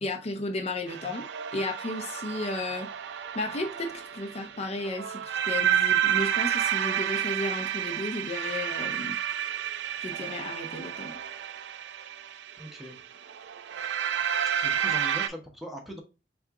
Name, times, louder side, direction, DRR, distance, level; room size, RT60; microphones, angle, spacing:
voice 1, 0.0-1.3 1.5-2.9 3.3-9.2 10.0-11.2, left 2 dB, 35° left, 0.5 m, -34 dB
sound 1, 0.9-15.3, right 9 dB, 75° right, 0.4 m, -30 dB
voice 2, 12.6-13.0 14.5-16.0, equal, ahead, 0.7 m, -40 dB
3.6 x 2.4 x 4.5 m
head